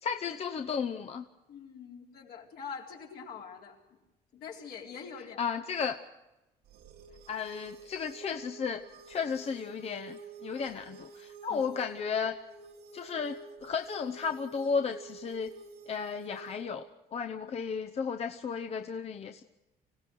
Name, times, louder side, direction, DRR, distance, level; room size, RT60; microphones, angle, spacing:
voice 1, 0.0-1.2 5.4-6.0 7.3-12.4 12.9-15.5 15.9-16.9 17.1-19.4, left 6 dB, 35° left, 6 dB, 0.8 m, -34 dB
voice 2, 1.5-4.0 4.3-5.4 11.5-11.6 17.5-17.6, left 6 dB, 70° left, -1 dB, 4.2 m, -44 dB
sound 1, 6.7-16.7, right 4 dB, 80° right, 2.7 m, -49 dB
25.0 x 16.5 x 6.2 m, 1.0 s
cardioid pair, 110°, 17 cm